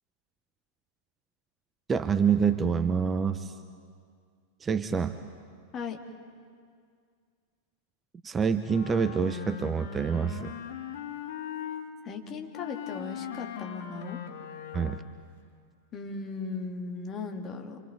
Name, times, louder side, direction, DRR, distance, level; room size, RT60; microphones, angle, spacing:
voice 1, 1.9-3.5 4.6-5.2 8.2-10.5 14.7-15.0, right 6 dB, 20° right, 11 dB, 0.8 m, -26 dB
Wind instrument woodwind instrument, 8.6-11.9 12.5-15.3, left 10 dB, 55° left, 1.6 m, -39 dB
voice 2, 12.0-14.2 15.9-17.8, left 4 dB, 30° left, 3 dB, 2.6 m, -37 dB
28.0 x 24.5 x 5.4 m, 2.1 s
figure-of-eight pair, 90°, 0 cm